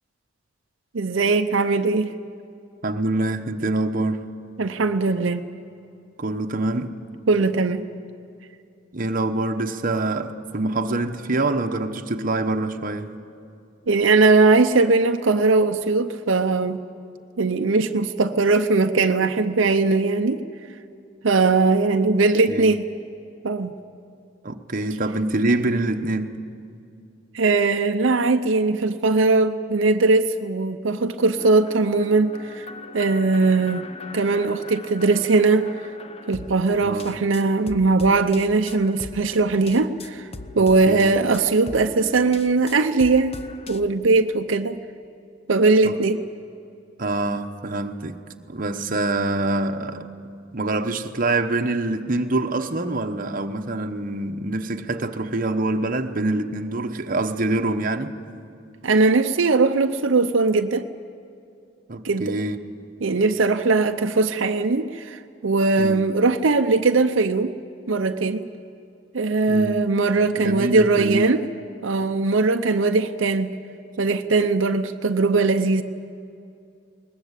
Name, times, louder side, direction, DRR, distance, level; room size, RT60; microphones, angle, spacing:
voice 1, 0.9-2.1 4.6-5.5 7.3-7.9 13.9-16.8 17.4-20.4 21.2-22.9 23.4-23.7 27.3-32.6 32.9-33.9 34.1-35.7 36.3-40.3 40.6-43.3 43.7-44.8 45.5-46.2 58.8-60.9 62.0-62.4 63.0-67.5 67.9-68.5 69.1-71.4 71.8-73.5 74.0-75.8, right 3 dB, 85° right, 7 dB, 0.7 m, -20 dB
voice 2, 2.8-4.2 6.2-7.0 8.9-13.1 22.5-22.7 24.4-26.4 36.8-37.2 40.6-41.1 45.8-46.0 47.0-48.2 48.5-50.1 50.5-58.1 61.9-62.6 65.8-66.1 69.5-69.9 70.4-71.2, right 2 dB, 45° right, 5 dB, 1.1 m, -25 dB
sound 1, 31.4-43.8, left 3 dB, 30° left, 0.8 m, -40 dB
21.0 x 20.0 x 8.3 m, 2.5 s
head